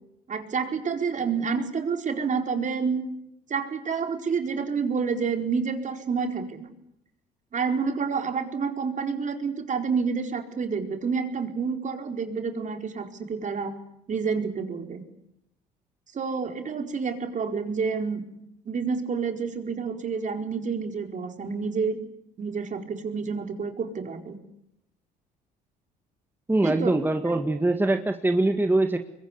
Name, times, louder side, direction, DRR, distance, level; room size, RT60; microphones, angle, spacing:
voice 1, 0.3-3.0 3.5-6.7 7.5-13.8 14.1-15.0 16.1-18.2 18.6-22.0 22.4-24.4 26.6-26.9 27.3-27.4, right 5 dB, 45° right, 5 dB, 4.5 m, -29 dB
voice 2, 26.5-29.0, right 2 dB, 10° right, 5 dB, 1.9 m, -23 dB
25.5 x 22.5 x 9.9 m, 0.81 s
supercardioid pair, 70°, 18 cm